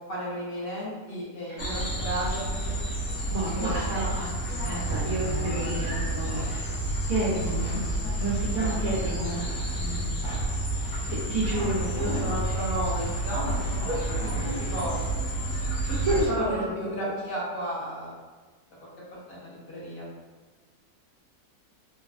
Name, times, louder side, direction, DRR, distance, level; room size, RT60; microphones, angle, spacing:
voice 1, 0.1-2.7 3.5-4.1 4.8-5.8 8.5-8.7 11.5-15.1 16.3-18.1 18.8-18.9 19.3-20.1, equal, 65° left, -7 dB, 0.5 m, -34 dB
sound 1, 1.6-16.3, right 2 dB, 85° left, 1.1 m, -30 dB
voice 2, 3.3-6.7 7.1-7.8 8.2-9.4 11.1-12.2 13.9-14.0 15.9-17.1, right 1 dB, 65° right, -8 dB, 1.0 m, -30 dB
3.2 x 2.1 x 2.4 m, 1.3 s
omnidirectional pair, 1.7 m